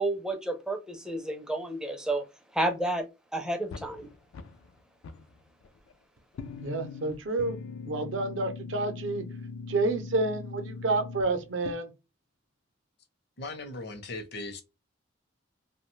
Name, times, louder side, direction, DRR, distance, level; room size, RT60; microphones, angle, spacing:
voice 1, 0.0-2.2 2.5-3.0 3.3-4.1, right 2 dB, 5° right, 0.4 m, -30 dB
sound 1, 3.7-4.7 5.0-5.9 6.3-11.7, left 4 dB, 90° left, 0.3 m, -41 dB
voice 2, 6.6-7.6 7.9-9.2 9.7-11.9, right 2 dB, 70° right, 0.6 m, -29 dB
voice 3, 13.4-14.6, left 2 dB, 55° left, 0.6 m, -38 dB
2.7 x 2.2 x 3.0 m
head